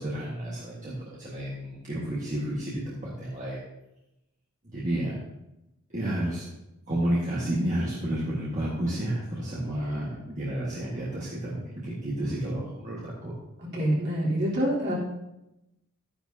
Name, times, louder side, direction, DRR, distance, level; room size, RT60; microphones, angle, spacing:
voice 1, 0.0-3.6 4.6-5.2 5.9-6.5 6.9-13.4, right 1 dB, 35° right, -6 dB, 1.6 m, -31 dB
voice 2, 13.6-14.9, right 1 dB, 50° right, -6 dB, 3.5 m, -26 dB
12.0 x 10.0 x 2.8 m, 0.91 s
head